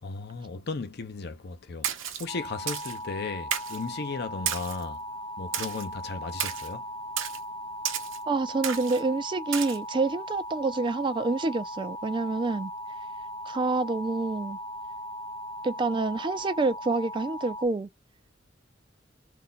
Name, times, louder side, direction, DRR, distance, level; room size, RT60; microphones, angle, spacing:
voice 1, 0.0-1.9 2.2-5.0 5.4-6.9, left 4 dB, 55° left, 0.6 m, -35 dB
Splash splatter, 1.8-2.2 2.7-3.0 3.5-3.8 4.5-4.8 5.5-5.9 6.4-6.7 7.2-7.4 7.8-8.2 8.6-9.0 9.5-9.8, right 9 dB, 90° right, 0.8 m, -32 dB
sound 1, 2.3-17.7, equal, 20° left, 0.6 m, -38 dB
voice 2, 8.3-12.7 13.5-14.6 15.6-17.9, right 3 dB, 25° right, 0.3 m, -27 dB
2.6 x 2.2 x 3.8 m
head